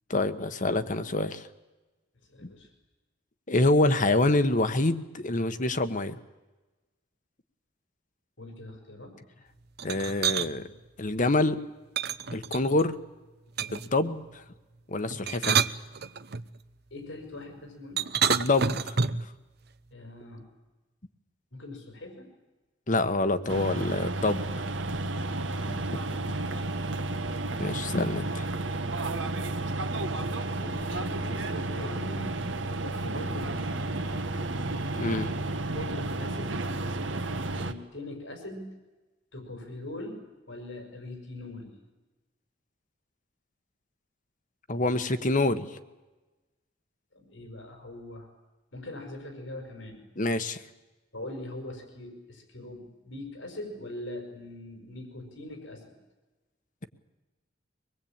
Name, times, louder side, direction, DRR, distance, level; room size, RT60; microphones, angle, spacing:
voice 1, 0.1-1.5 2.4-2.5 3.5-6.2 9.8-10.7 11.0-11.6 12.3-13.0 13.7-14.4 14.9-15.6 18.3-19.1 22.9-24.4 25.7-26.0 27.6-28.4 35.0-35.3 44.7-45.7 50.2-50.6, left 2 dB, 45° left, 10 dB, 1.3 m, -26 dB
voice 2, 2.3-2.7 8.4-9.2 16.9-18.1 19.9-20.5 21.5-22.3 25.5-25.9 26.3-26.7 28.9-29.4 30.2-32.3 32.7-34.0 35.7-36.6 37.5-38.8 39.3-41.8 47.1-48.3 48.7-50.0 51.1-55.9, left 1 dB, 90° left, 4 dB, 5.4 m, -42 dB
sound 1, 9.8-10.5 12.0-12.9 13.6-14.0 15.1-16.4 18.0-19.3, right 7 dB, 60° right, 0.8 m, -28 dB
sound 2, 23.5-37.7, right 2 dB, 80° right, 1.5 m, -32 dB
24.0 x 20.5 x 8.9 m, 1.1 s
head